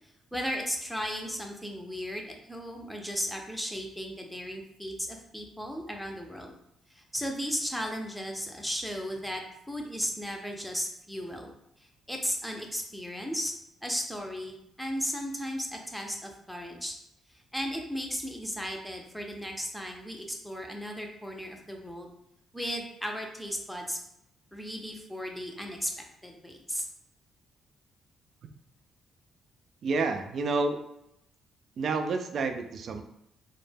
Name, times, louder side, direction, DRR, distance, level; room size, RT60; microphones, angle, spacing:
voice 1, 0.3-6.5 6.9-13.5 13.8-16.9 17.3-22.1 22.5-24.0 24.5-26.9, equal, 5° left, 2 dB, 0.5 m, -35 dB
voice 2, 29.8-30.8 31.8-33.0, right 3 dB, 60° right, 6 dB, 0.3 m, -29 dB
2.1 x 2.1 x 3.2 m, 0.80 s
cardioid pair, 90°, 0 cm